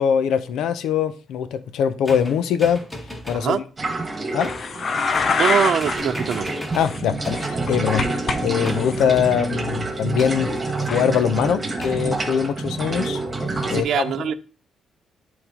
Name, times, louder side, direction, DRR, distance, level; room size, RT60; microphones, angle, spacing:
voice 1, 0.0-2.8 3.3-3.6 4.3-4.5 6.7-13.2 13.7-14.0, left 8 dB, 80° left, 0.6 m, -22 dB
sound 1, 2.1-3.5 4.4-4.8 5.1-5.5 5.8-7.6 8.6-9.1 10.2-10.7 11.8-12.2, equal, 10° left, 1.6 m, -36 dB
sound 2, 3.8-13.8, right 2 dB, 20° right, 1.4 m, -28 dB
sound 3, 4.4-6.0 6.2-6.4 6.8-8.4 8.6-9.0 10.9-11.0, left 5 dB, 40° left, 0.6 m, -25 dB
voice 2, 5.4-6.5 13.6-14.3, right 8 dB, 60° right, 0.5 m, -22 dB
11.0 x 4.1 x 2.9 m
cardioid pair, 125°, 0 cm